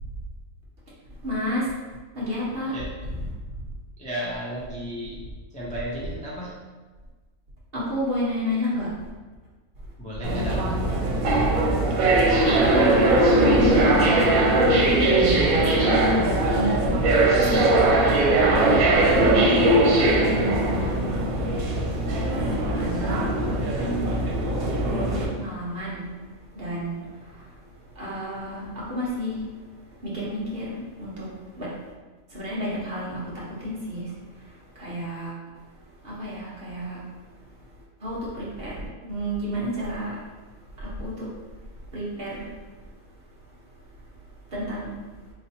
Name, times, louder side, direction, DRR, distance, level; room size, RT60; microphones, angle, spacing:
voice 1, 1.2-1.7 2.1-2.8 7.7-9.0 11.2-11.6 12.4-17.0 18.5-21.4 22.3-24.2 24.8-31.9 32.3-35.4 35.9-37.1 38.0-40.2 40.7-41.4 41.9-42.6 44.5-45.0, equal, 45° right, -6 dB, 1.2 m, -31 dB
voice 2, 4.0-5.2 5.5-6.5 10.0-10.9 19.0-19.3, equal, 10° left, -7 dB, 0.4 m, -34 dB
sound 1, 10.2-25.3, right 2 dB, 85° right, 1.1 m, -20 dB
4.1 x 3.1 x 2.8 m, 1.3 s
omnidirectional pair, 1.4 m